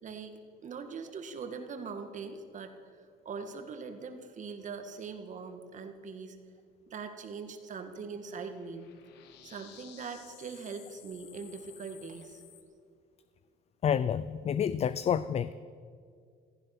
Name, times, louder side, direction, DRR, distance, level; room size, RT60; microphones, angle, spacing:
voice 1, 0.0-2.7 3.3-6.4 6.9-8.9 9.4-12.4, right 5 dB, 45° right, 6 dB, 2.0 m, -42 dB
sound 1, 8.3-12.6, left 10 dB, 90° left, 1.6 m, -55 dB
voice 2, 13.8-15.5, left 8 dB, 40° left, 15 dB, 0.4 m, -29 dB
16.0 x 14.5 x 6.1 m, 2.2 s
cardioid pair, 110°, 17 cm